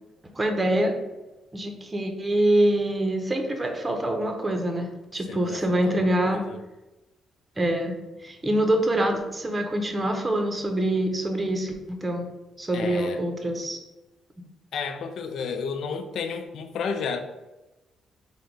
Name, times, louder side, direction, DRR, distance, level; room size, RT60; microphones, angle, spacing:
voice 1, 0.4-0.9 1.5-6.4 7.6-8.0 8.2-12.3 12.6-13.8, right 1 dB, 20° right, 4 dB, 0.7 m, -25 dB
voice 2, 5.3-6.6 12.7-13.2 14.7-17.2, left 5 dB, 70° left, 7 dB, 0.4 m, -32 dB
3.8 x 2.1 x 4.5 m, 1.0 s
cardioid pair, 90°, 0 cm